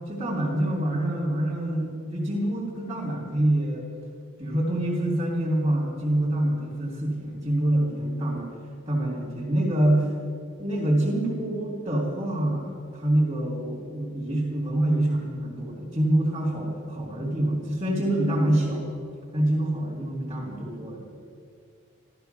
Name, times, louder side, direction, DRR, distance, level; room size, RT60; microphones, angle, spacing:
voice 1, 0.1-3.9 4.4-8.5 8.8-10.1 10.6-18.9 19.3-21.0, right 1 dB, 25° right, -6 dB, 2.9 m, -26 dB
14.0 x 14.0 x 6.9 m, 2.3 s
head